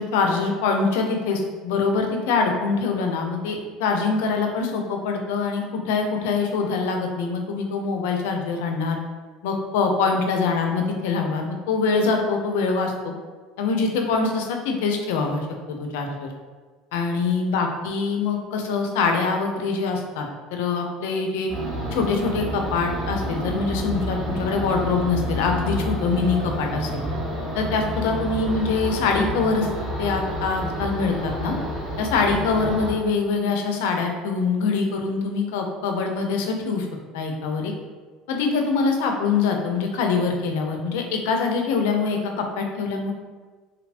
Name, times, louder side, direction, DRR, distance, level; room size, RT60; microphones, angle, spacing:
voice 1, 0.0-9.0 9.4-13.1 13.6-16.3 16.9-20.2 20.5-21.5 21.9-27.0 27.5-29.7 30.0-31.6 32.0-36.9 37.1-37.7 38.3-43.1, left 4 dB, 80° left, 3 dB, 0.4 m, -24 dB
sound 1, 21.5-32.9, equal, 40° right, 0.9 m, -29 dB
2.9 x 2.1 x 2.5 m, 1.4 s
supercardioid pair, 90°, 0 cm